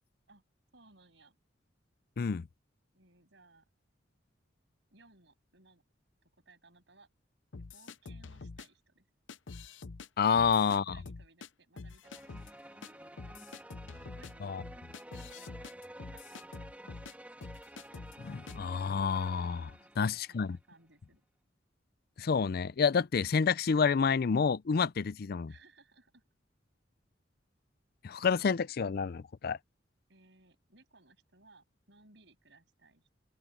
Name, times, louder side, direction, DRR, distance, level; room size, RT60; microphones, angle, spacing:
voice 1, 0.7-1.4 2.9-3.7 4.9-5.8 6.5-7.1 7.5-9.1 10.5-17.4 19.8-21.2 25.5-26.2 30.1-33.1, right 3 dB, 70° right, 7.4 m, -63 dB
voice 2, 2.2-2.5 10.2-11.0 14.4-14.6 18.2-19.7 20.0-20.6 22.2-25.5 28.0-29.6, left 5 dB, 55° left, 0.4 m, -29 dB
sound 1, 7.5-8.7 9.3-10.1 10.3-11.5 11.8-12.5 12.8-12.9 13.2-17.1 17.4-18.2 18.5-18.7, left 4 dB, 85° left, 0.7 m, -46 dB
sound 2, 12.0-20.6, right 1 dB, 10° right, 1.9 m, -51 dB
open air
head